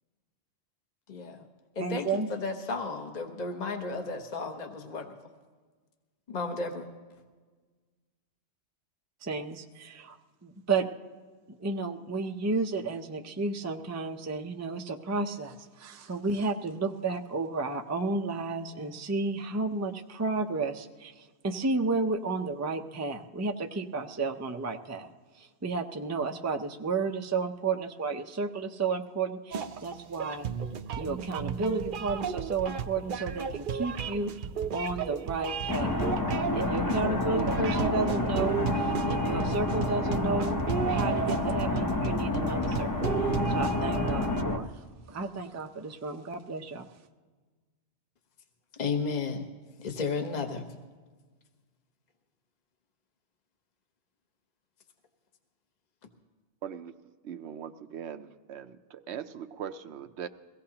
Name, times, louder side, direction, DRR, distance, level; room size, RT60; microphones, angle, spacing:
voice 1, 1.1-1.5 1.7-5.1 6.3-6.9 48.7-49.5 49.8-50.7, left 4 dB, 40° left, 5 dB, 1.1 m, -33 dB
voice 2, 1.8-2.3 9.2-10.2 10.4-10.9 11.5-21.1 21.4-25.1 25.4-30.5 31.0-34.3 34.7-36.0 36.5-40.6 40.9-44.7 45.1-46.9, right 3 dB, 20° right, 5 dB, 0.5 m, -32 dB
sound 1, 29.5-44.4, right 6 dB, 55° right, 0.7 m, -33 dB
sound 2, 35.7-44.6, left 2 dB, 20° left, 0.7 m, -29 dB
voice 3, 56.6-56.9 57.2-60.3, right 8 dB, 75° right, 11 dB, 1.0 m, -40 dB
22.5 x 17.0 x 2.9 m, 1.4 s
omnidirectional pair, 1.1 m